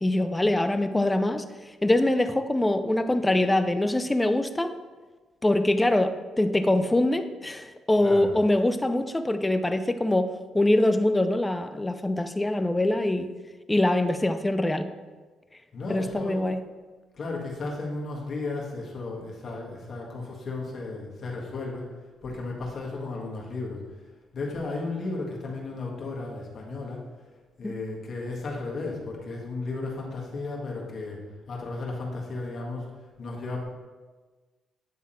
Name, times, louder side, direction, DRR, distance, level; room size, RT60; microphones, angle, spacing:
voice 1, 0.0-1.4 1.8-4.7 5.4-13.3 13.7-14.9 15.9-16.6 27.6-27.7, left 1 dB, 15° left, 9 dB, 0.5 m, -24 dB
voice 2, 8.0-8.3 15.7-16.4 17.1-21.9 22.2-23.8 24.3-27.0 27.6-31.2 31.5-32.9 33.2-33.6, left 3 dB, 55° left, -2 dB, 1.7 m, -34 dB
9.3 x 3.5 x 4.4 m, 1.3 s
cardioid pair, 90°, 0 cm